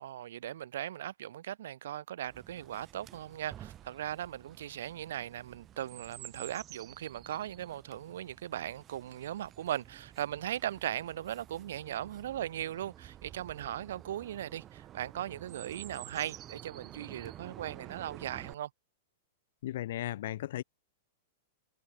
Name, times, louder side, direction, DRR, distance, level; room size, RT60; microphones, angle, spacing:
voice 1, 0.0-18.7, right 11 dB, 65° right, 1.0 m, -38 dB
Chirp tweet, 2.3-18.5, right 12 dB, 30° right, 4.8 m, -51 dB
voice 2, 19.6-20.6, left 13 dB, 60° left, 0.4 m, -36 dB
hypercardioid pair, 105°, 0 cm